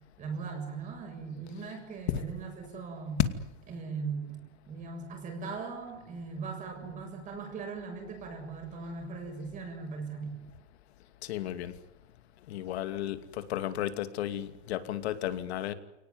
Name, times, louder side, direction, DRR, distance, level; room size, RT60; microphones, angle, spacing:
voice 1, 0.2-3.2 3.7-10.4, right 4 dB, 20° right, 4 dB, 7.0 m, -39 dB
voice 2, 11.2-11.7 12.5-15.7, left 12 dB, 65° left, 11 dB, 2.6 m, -34 dB
29.5 x 18.5 x 9.7 m, 0.97 s
supercardioid pair, 165°, 34 cm